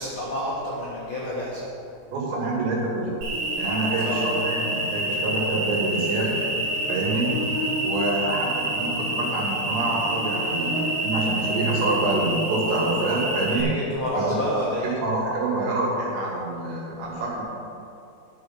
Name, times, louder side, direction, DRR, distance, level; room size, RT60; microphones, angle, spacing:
voice 1, 0.0-1.7 4.0-4.3 7.2-7.4 13.5-14.9, equal, 70° left, -6 dB, 1.2 m, -29 dB
voice 2, 2.1-3.1 3.6-6.3 6.9-7.3 7.8-13.7 14.1-14.4 15.0-17.4, right 2 dB, 85° right, -3 dB, 4.4 m, -26 dB
Cricket, 3.2-13.6, right 1 dB, 65° right, 4.3 m, -27 dB
sound 1, 4.5-12.3, left 1 dB, 35° right, 3.2 m, -43 dB
11.5 x 6.3 x 6.0 m, 2.7 s
omnidirectional pair, 4.9 m